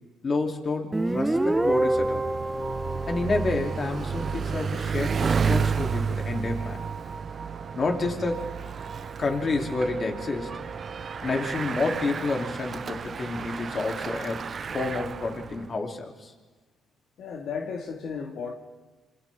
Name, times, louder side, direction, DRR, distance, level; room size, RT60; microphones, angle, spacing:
voice 1, 0.2-2.2 3.1-6.8 7.7-8.5 9.2-10.5 11.2-14.4 14.7-16.3, left 3 dB, 40° left, 2 dB, 3.1 m, -29 dB
Guitar, 0.9-4.4, right 1 dB, 15° right, 1.2 m, -27 dB
Bicycle, 1.1-15.7, right 6 dB, 45° right, 0.5 m, -32 dB
sound 1, 2.6-12.4, right 5 dB, 65° right, 3.8 m, -43 dB
voice 2, 17.2-18.5, left 5 dB, 70° left, 1 dB, 2.0 m, -34 dB
27.0 x 27.0 x 3.7 m, 1.3 s
cardioid pair, 90°, 0 cm